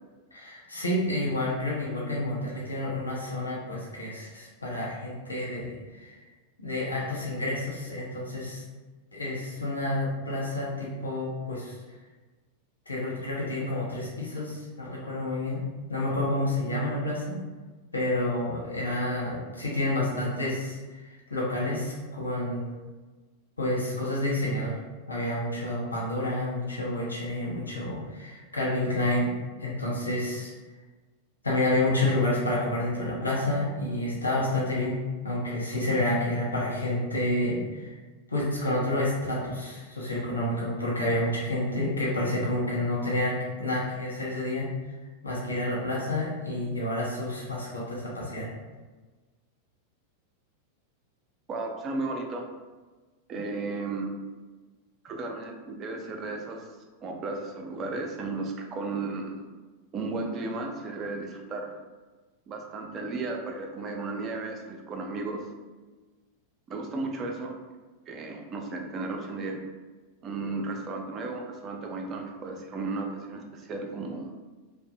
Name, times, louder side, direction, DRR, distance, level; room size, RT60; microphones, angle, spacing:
voice 1, 0.3-6.2 6.6-8.6 9.1-11.8 12.9-15.6 15.9-17.4 17.9-22.6 23.6-24.8 25.1-29.3 29.6-30.5 31.4-38.0 38.3-44.9 45.2-48.5, left 1 dB, 80° left, -5 dB, 0.6 m, -29 dB
voice 2, 51.5-52.5 53.3-54.2 55.0-56.7 57.0-59.4 59.9-61.7 62.5-65.4 66.7-67.5 68.1-69.6 70.2-74.3, right 3 dB, 30° right, 2 dB, 0.4 m, -34 dB
2.6 x 2.0 x 2.6 m, 1.3 s
figure-of-eight pair, 90°, 0 cm